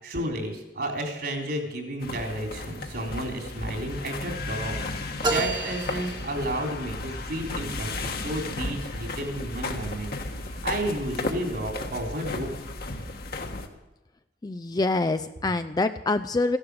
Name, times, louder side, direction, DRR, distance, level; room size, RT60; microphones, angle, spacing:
voice 1, 0.0-10.1 10.4-12.5, right 1 dB, 65° right, 2 dB, 3.6 m, -32 dB
sound 1, 2.0-13.7, left 2 dB, 60° left, 1.6 m, -34 dB
sound 2, 5.2-6.9, right 2 dB, 25° right, 1.4 m, -30 dB
voice 2, 14.4-16.6, left 2 dB, 25° left, 9 dB, 0.4 m, -25 dB
15.0 x 11.5 x 6.8 m, 1.0 s
head